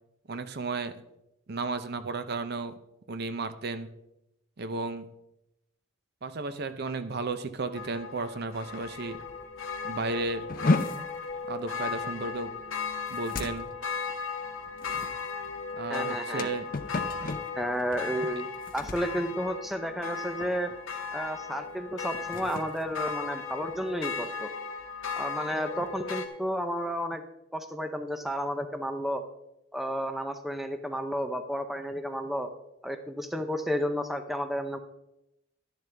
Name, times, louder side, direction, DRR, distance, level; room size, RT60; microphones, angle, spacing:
voice 1, 0.3-1.0 1.5-2.7 3.1-3.9 4.6-5.1 6.2-9.2 9.8-10.5 11.5-12.6 13.1-13.7 15.8-16.6, right 3 dB, 50° right, 11 dB, 0.6 m, -33 dB
sound 1, 7.7-26.3, left 5 dB, 80° left, 1.2 m, -36 dB
sound 2, 10.5-20.1 20.4-20.8 21.2-21.4 22.0-23.9, left 2 dB, 45° left, 0.6 m, -34 dB
voice 2, 15.9-16.5 17.6-18.5 18.7-20.7 21.1-24.5 25.2-27.2 27.5-29.2 29.7-32.5 32.8-34.8, equal, ahead, 7 dB, 0.6 m, -32 dB
11.5 x 10.5 x 3.4 m, 0.87 s
head